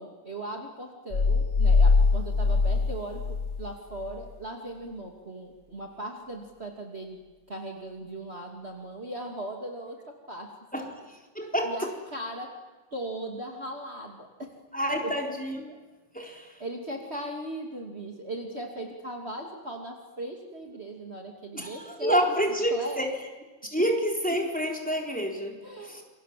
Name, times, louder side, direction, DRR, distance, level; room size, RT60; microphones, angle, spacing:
voice 1, 0.0-7.2 7.5-10.5 10.7-10.9 11.6-12.5 12.9-14.5 15.0-15.1 16.2-22.2 22.7-23.0 25.6-26.0, right 1 dB, 35° right, 2 dB, 2.8 m, -38 dB
sound 1, 1.1-3.7 4.0-4.1, left 4 dB, 40° left, 1.2 m, -22 dB
voice 2, 11.3-11.9 14.7-15.8 16.1-16.6 21.5-23.1 23.6-26.0, equal, 5° left, 1 dB, 3.9 m, -28 dB
28.0 x 24.0 x 7.5 m, 1.2 s
omnidirectional pair, 2.0 m